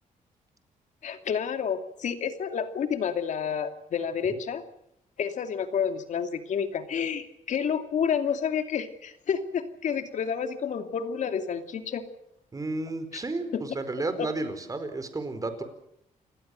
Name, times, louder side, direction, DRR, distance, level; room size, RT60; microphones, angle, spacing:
voice 1, 1.0-4.6 5.2-12.0 13.1-13.2 13.5-13.6 14.2-14.3, left 7 dB, 60° left, 8 dB, 2.6 m, -29 dB
voice 2, 12.5-15.6, right 2 dB, 25° right, 10 dB, 4.5 m, -32 dB
29.0 x 19.5 x 6.6 m, 0.74 s
cardioid pair, 110°, 14 cm